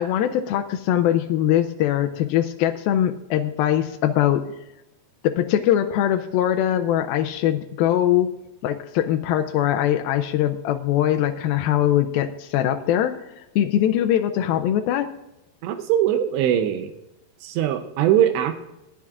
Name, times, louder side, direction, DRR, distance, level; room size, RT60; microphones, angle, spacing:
voice 1, 0.0-4.5 5.2-8.3 8.6-15.1, left 11 dB, 90° left, 5 dB, 2.1 m, -22 dB
voice 2, 15.6-16.9 17.4-18.5, right 11 dB, 90° right, 7 dB, 3.0 m, -21 dB
20.0 x 13.5 x 2.4 m, 0.93 s
omnidirectional pair, 4.9 m